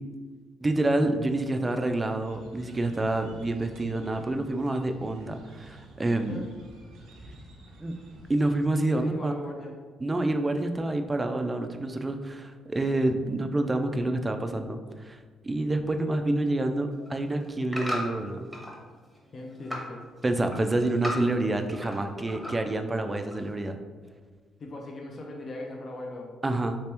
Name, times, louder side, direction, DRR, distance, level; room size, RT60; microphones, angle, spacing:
voice 1, 0.6-6.4 7.8-7.9 8.3-9.3 10.0-18.5 20.2-23.8 26.4-26.8, right 2 dB, 20° right, 6 dB, 0.3 m, -28 dB
sound 1, 2.2-8.5, right 2 dB, 85° right, 0.6 m, -50 dB
voice 2, 8.9-9.7 19.3-20.1 24.6-26.3, left 2 dB, 45° left, 0 dB, 0.4 m, -39 dB
sound 2, 16.9-18.8 19.2-19.9 20.3-22.0 22.3-22.8 23.3-23.4, left 1 dB, 10° left, 0.8 m, -36 dB
3.3 x 2.9 x 3.3 m, 1.5 s
cardioid pair, 90°, 0 cm